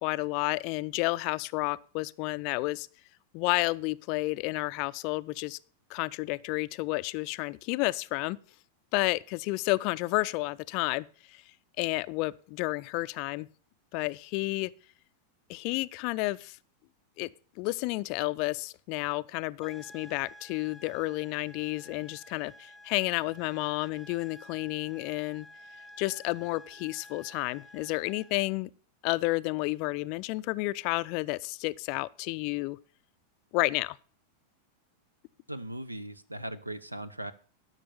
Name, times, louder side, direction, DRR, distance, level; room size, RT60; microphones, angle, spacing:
voice 1, 0.0-2.9 3.3-5.6 5.9-8.4 8.9-11.4 11.8-13.5 13.9-14.7 15.5-16.6 17.2-17.3 17.6-25.5 26.0-28.7 29.0-32.8 33.5-34.0, left 22 dB, 45° left, 0.4 m, -31 dB
sound 1, 19.6-28.5, left 1 dB, ahead, 0.6 m, -51 dB
voice 2, 35.5-37.3, right 1 dB, 85° right, 0.7 m, -38 dB
12.0 x 6.1 x 6.9 m
figure-of-eight pair, 90°, 0 cm